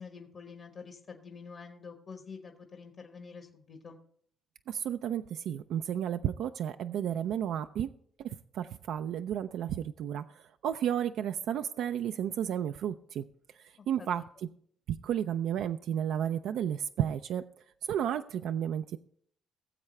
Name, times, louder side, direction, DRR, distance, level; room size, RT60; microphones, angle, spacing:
voice 1, 0.0-4.0 13.8-14.2, left 5 dB, 55° left, 4 dB, 1.3 m, -47 dB
voice 2, 4.7-7.9 8.2-13.2 13.6-14.2 15.0-17.4 17.8-19.0, right 9 dB, 80° right, 8 dB, 0.4 m, -32 dB
18.0 x 7.4 x 3.3 m, 0.62 s
cardioid pair, 90°, 0 cm